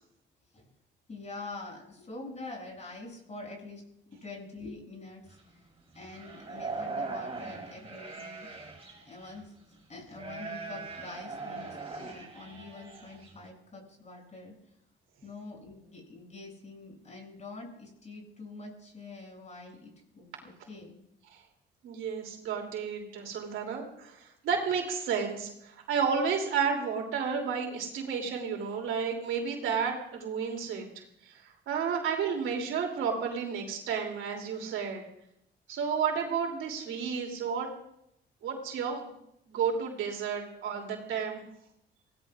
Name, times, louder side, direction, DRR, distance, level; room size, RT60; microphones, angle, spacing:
voice 1, 1.1-3.9 4.2-5.7 5.9-8.5 9.0-9.5 9.9-14.5 15.2-21.0, left 3 dB, 35° left, 0 dB, 7.3 m, -45 dB
sound 1, 5.3-5.4 5.9-9.4 10.1-13.5, right 3 dB, 30° right, 6.2 m, -41 dB
voice 2, 21.8-30.9 31.3-35.0 35.7-37.7 38.4-39.0 39.5-41.4, right 6 dB, 80° right, 1 dB, 3.1 m, -32 dB
24.0 x 17.5 x 2.5 m, 0.78 s
cardioid pair, 90°, 20 cm